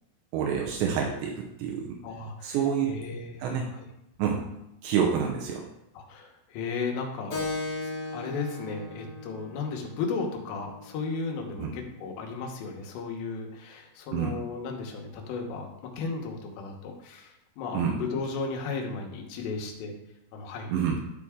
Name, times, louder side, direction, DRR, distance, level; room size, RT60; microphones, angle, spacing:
voice 1, 0.3-2.0 2.4-2.9 3.4-3.7 4.2-4.4 4.8-5.6 11.6-11.7 14.1-14.4 17.7-18.0 20.7-21.0, right 7 dB, 85° right, 0 dB, 3.0 m, -27 dB
voice 2, 2.0-2.6 2.9-3.9 5.9-7.4 8.1-19.9 20.3-20.7, left 4 dB, 80° left, 1 dB, 3.3 m, -35 dB
Keyboard (musical), 7.3-12.4, left 3 dB, 40° left, 1.3 m, -38 dB
12.5 x 4.3 x 3.7 m, 0.84 s
omnidirectional pair, 4.9 m